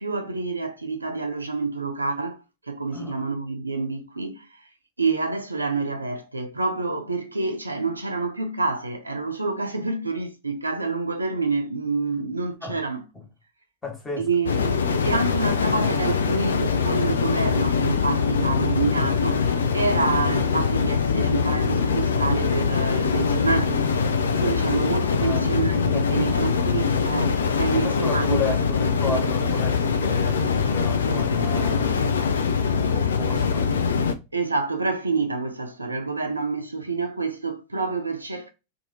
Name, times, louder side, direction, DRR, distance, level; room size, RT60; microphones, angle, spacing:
voice 1, 0.0-2.4 2.7-4.6 5.0-13.0 14.2-23.8 24.4-28.4 34.3-38.5, right 3 dB, 80° right, 0.6 m, -27 dB
voice 2, 13.8-14.3 25.2-25.5 25.9-26.3 27.7-32.0 32.8-33.7, left 2 dB, 15° left, 1.4 m, -33 dB
sound 1, 14.5-34.1, left 5 dB, 70° left, 0.4 m, -23 dB
2.8 x 2.6 x 4.0 m
figure-of-eight pair, 90°, 0 cm